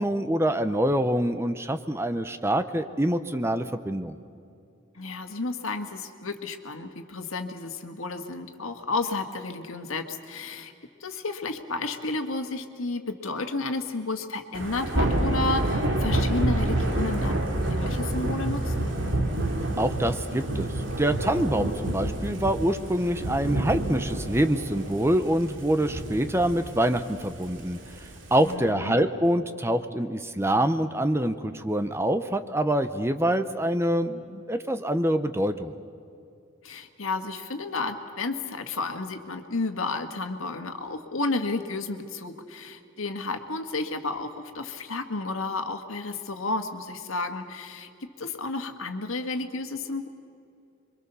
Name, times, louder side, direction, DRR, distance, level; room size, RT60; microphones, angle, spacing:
voice 1, 0.0-4.1 19.8-20.7 21.0-27.8 28.3-35.7, right 1 dB, 10° right, 10 dB, 0.7 m, -25 dB
voice 2, 5.0-10.7 11.0-18.7 28.4-29.0 36.6-50.1, left 3 dB, 80° left, 6 dB, 1.8 m, -32 dB
Thunder / Rain, 14.5-28.5, right 1 dB, 65° right, 2.7 m, -28 dB
26.5 x 23.5 x 6.9 m, 2.6 s
head